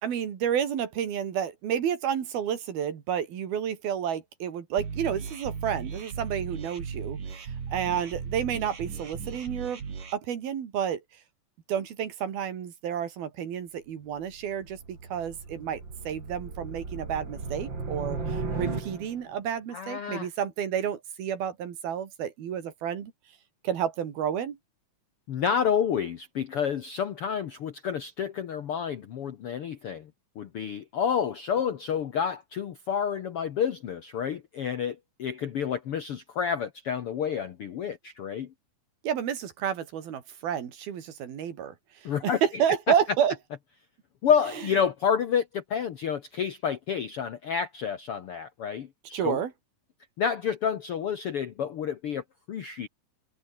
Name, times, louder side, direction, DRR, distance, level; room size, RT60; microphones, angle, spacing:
voice 1, 0.0-7.4 7.7-9.8 10.1-11.0 11.7-23.1 23.6-24.6 39.0-41.7 42.2-43.3 49.1-49.5, right 9 dB, 85° right, 4.6 m, -30 dB
sound 1, 4.8-10.1, right 5 dB, 60° right, 5.9 m, -37 dB
sound 2, 14.1-19.4, right 4 dB, 30° right, 4.4 m, -36 dB
voice 2, 19.7-20.3 25.3-30.1 30.3-38.5 42.0-42.4 44.2-49.4 50.2-52.9, left 7 dB, 70° left, 1.4 m, -29 dB
omnidirectional pair, 4.2 m